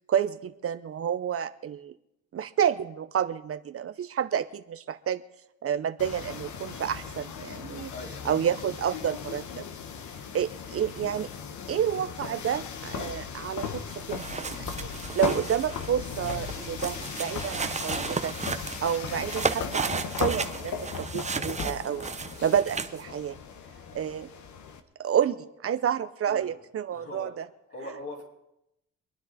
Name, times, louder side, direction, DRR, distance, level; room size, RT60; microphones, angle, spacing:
voice 1, 0.1-1.9 2.3-5.2 5.6-7.9 8.2-9.6 10.3-11.3 11.7-14.4 14.8-14.9 15.1-18.3 18.8-22.1 22.4-23.3 23.9-24.3 25.0-27.4, right 9 dB, 50° right, 12 dB, 0.7 m, -29 dB
sound 1, 6.0-24.8, left 6 dB, 70° left, 1.3 m, -37 dB
voice 2, 7.9-8.4 8.8-9.4 26.3-26.6 26.9-27.3 27.7-28.2, left 1 dB, 55° left, -2 dB, 5.0 m, -42 dB
sound 2, 13.9-23.0, right 4 dB, 25° right, 0.9 m, -34 dB
25.5 x 10.0 x 4.2 m, 0.84 s
cardioid pair, 90°, 30 cm